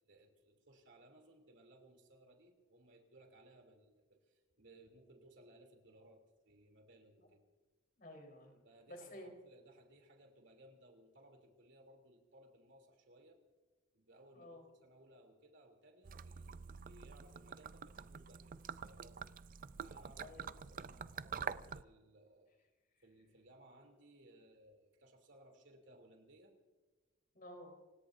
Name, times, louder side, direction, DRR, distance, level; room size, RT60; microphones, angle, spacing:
voice 1, 0.0-7.4 8.6-13.4 13.9-19.2 19.8-22.5 23.0-26.5, right 1 dB, 55° right, 4 dB, 3.1 m, -63 dB
voice 2, 8.0-8.6 8.9-9.3 14.3-14.6 20.2-20.4 27.3-27.7, left 1 dB, 45° left, 3 dB, 4.0 m, -52 dB
Gurgling / Liquid, 16.0-21.8, right 6 dB, 40° right, 0.4 m, -47 dB
29.0 x 17.0 x 2.7 m, 1.3 s
head